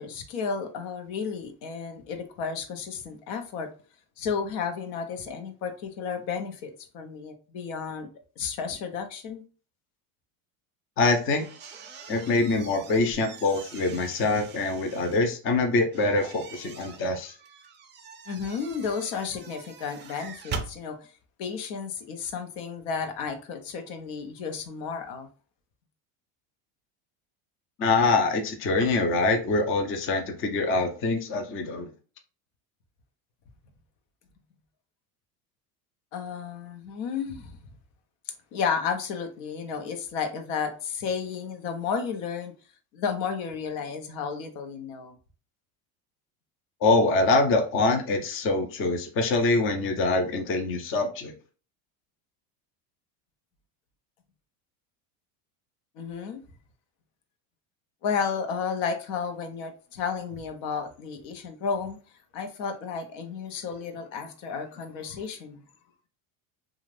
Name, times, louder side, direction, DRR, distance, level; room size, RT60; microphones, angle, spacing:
voice 1, 0.0-3.7 4.2-8.1 8.4-9.4 18.3-21.0 21.4-25.3 36.1-37.6 38.5-42.5 42.9-45.2 56.0-56.4 58.0-62.0 62.3-65.6, left 6 dB, 70° left, 0.8 m, -32 dB
voice 2, 11.0-11.4 12.1-17.3 27.8-31.9 46.8-51.3, left 3 dB, 30° left, 0.6 m, -24 dB
sound 1, 11.0-15.2 15.9-20.7, right 5 dB, 25° right, 0.4 m, -43 dB
2.5 x 2.4 x 3.2 m
supercardioid pair, 115°, 43 cm